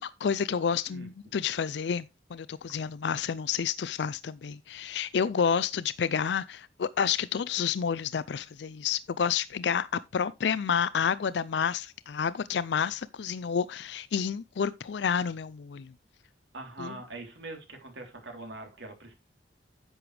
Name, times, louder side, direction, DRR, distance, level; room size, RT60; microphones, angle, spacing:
voice 1, 0.0-2.1 2.3-9.9 10.1-15.9 16.8-16.9, left 7 dB, 70° left, 0.4 m, -29 dB
voice 2, 16.5-19.1, right 2 dB, 85° right, 3.4 m, -43 dB
10.5 x 7.8 x 3.3 m
head